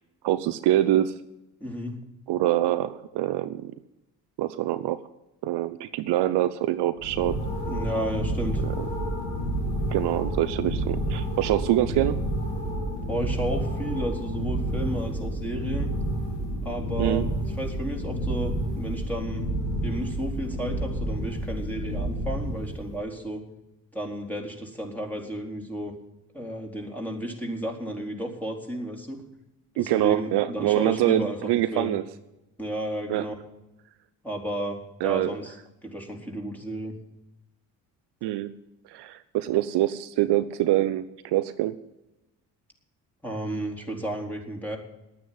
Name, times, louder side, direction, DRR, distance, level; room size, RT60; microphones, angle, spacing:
voice 1, 0.2-1.1 2.3-3.7 4.4-5.0 5.4-7.4 8.8-8.9 9.9-12.2 17.0-17.3 29.8-32.0 33.1-33.3 35.0-35.3 38.2-38.5 38.9-41.8, right 14 dB, 65° right, 12 dB, 0.7 m, -25 dB
voice 2, 1.6-2.0 7.6-8.6 13.1-15.9 16.6-17.3 17.6-19.4 19.8-23.4 23.9-25.9 26.3-29.2 29.7-31.4 31.7-32.0 32.6-33.3 34.2-35.6 35.8-36.9 43.2-44.8, right 1 dB, 5° left, 1 dB, 4.0 m, -32 dB
sound 1, 7.0-23.0, right 1 dB, 65° left, 3.2 m, -30 dB
10.5 x 9.3 x 9.2 m, 0.95 s
hypercardioid pair, 50°, 44 cm